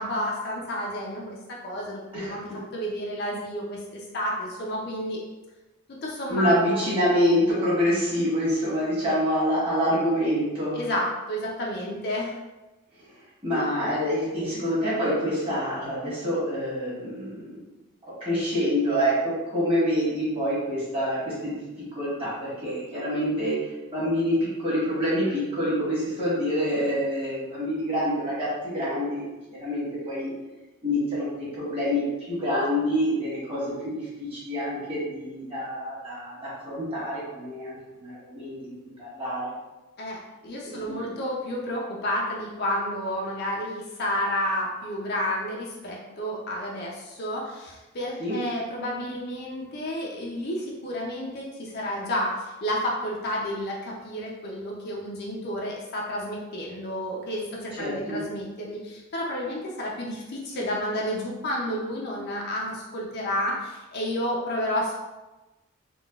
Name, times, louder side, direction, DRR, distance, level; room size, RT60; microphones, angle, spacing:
voice 1, 0.0-5.2 5.9-6.8 10.7-12.4 40.0-65.0, equal, 50° left, -3 dB, 0.5 m, -31 dB
voice 2, 6.3-10.8 13.0-13.1 13.4-17.6 18.0-21.6 21.9-23.6 23.9-30.3 30.8-39.5 40.6-41.1 48.2-48.4 57.8-58.2, equal, 25° right, -9 dB, 1.5 m, -26 dB
3.9 x 2.3 x 2.3 m, 1.1 s
head